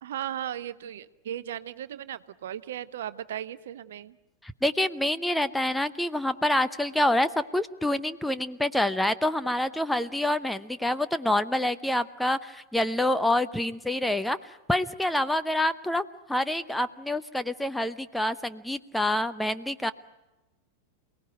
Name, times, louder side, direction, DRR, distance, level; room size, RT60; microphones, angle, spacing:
voice 1, 0.0-4.2, right 11 dB, 60° right, 15 dB, 0.8 m, -36 dB
voice 2, 4.4-16.0 16.3-19.9, left 1 dB, 5° left, 12 dB, 0.8 m, -27 dB
28.5 x 18.0 x 9.2 m, 1.1 s
figure-of-eight pair, 90°, 0 cm